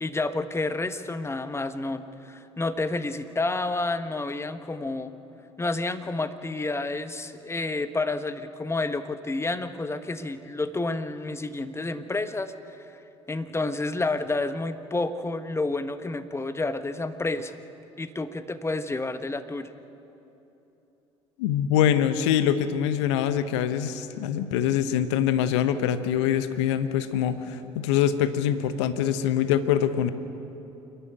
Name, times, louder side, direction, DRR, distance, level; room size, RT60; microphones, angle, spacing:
voice 1, 0.0-5.1 5.6-12.5 13.3-17.5 18.0-19.7, left 2 dB, 15° left, 11 dB, 1.3 m, -30 dB
voice 2, 21.4-30.1, left 9 dB, 75° left, 12 dB, 0.9 m, -24 dB
28.0 x 11.5 x 9.0 m, 3.0 s
hypercardioid pair, 60°, 15 cm